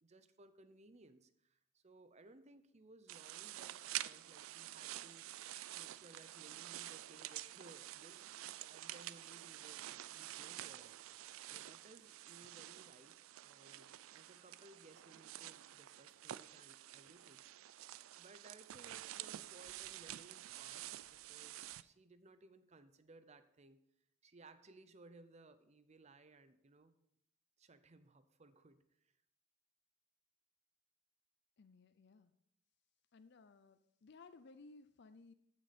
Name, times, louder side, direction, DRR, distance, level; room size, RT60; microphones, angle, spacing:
voice 1, 0.0-5.3 5.7-11.0 11.5-17.4 17.8-17.9 18.2-23.8 24.2-26.9 27.6-29.1, right 2 dB, 35° right, 12 dB, 0.6 m, -62 dB
sound 1, 3.1-21.8, right 14 dB, 80° right, 0.4 m, -49 dB
voice 2, 31.6-32.3 33.1-35.3, left 3 dB, 55° left, 11 dB, 0.5 m, -60 dB
14.5 x 6.4 x 4.2 m, 0.76 s
head